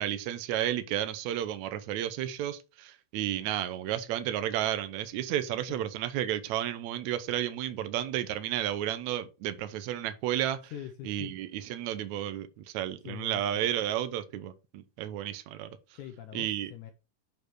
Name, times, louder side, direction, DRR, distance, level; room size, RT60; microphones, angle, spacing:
voice 1, 0.0-10.7 11.0-15.7 16.3-16.7, right 11 dB, 85° right, 1.6 m, -32 dB
voice 2, 10.7-11.3 13.0-13.7 15.9-16.9, left 11 dB, 75° left, 1.8 m, -43 dB
8.2 x 4.4 x 4.7 m
omnidirectional pair, 4.5 m